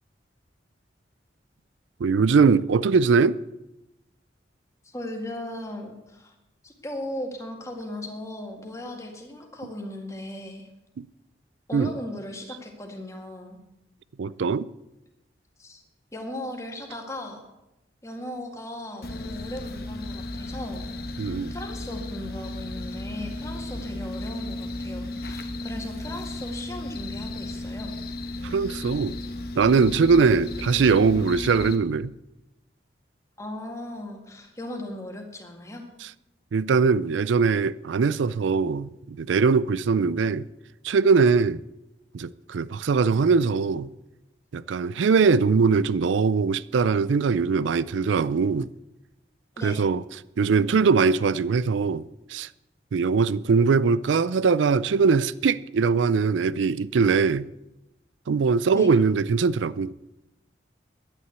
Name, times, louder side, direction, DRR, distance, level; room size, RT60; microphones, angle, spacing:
voice 1, 2.0-3.4 11.0-11.1 11.7-11.9 14.2-14.7 21.2-21.5 28.4-29.2 29.6-32.1 36.0-36.1 36.5-40.5 40.8-41.6 42.1-43.9 44.5-48.7 49.6-50.0 50.4-52.5 52.9-57.5 58.3-59.9, right 5 dB, 90° right, 0.4 m, -21 dB
voice 2, 4.8-6.3 6.6-10.7 11.7-13.6 15.6-15.8 16.1-17.4 18.0-20.9 21.2-27.9 33.4-35.8 49.5-49.8 58.7-58.9, left 1 dB, 15° left, 2.0 m, -37 dB
sound 1, 19.0-31.8, left 1 dB, 55° left, 1.2 m, -34 dB
11.0 x 9.8 x 8.1 m
head